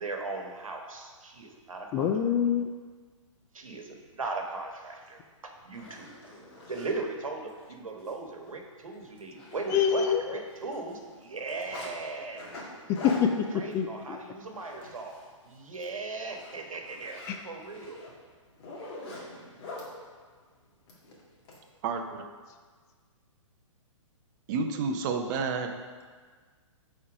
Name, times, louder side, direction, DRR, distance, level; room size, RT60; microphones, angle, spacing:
voice 1, 0.0-2.1 3.5-6.3 6.7-10.0 10.3-12.5 13.5-18.0, right 3 dB, 85° right, 3 dB, 1.3 m, -38 dB
voice 2, 1.9-2.7 9.7-10.4 12.9-14.2 17.3-17.4, left 8 dB, 20° left, 5 dB, 0.3 m, -26 dB
Zipper (clothing), 5.1-5.2 5.6-6.9 7.5-7.6 8.0-8.1 8.5-8.6 8.9-10.3 10.5-11.9 12.3-15.3 15.6-15.9 16.3-19.9 20.9-21.6, left 2 dB, 50° left, 2.1 m, -44 dB
voice 3, 21.8-22.2 24.5-25.7, right 4 dB, 35° right, 5 dB, 0.7 m, -30 dB
8.4 x 4.5 x 4.9 m, 1.5 s
hypercardioid pair, 135°, 17 cm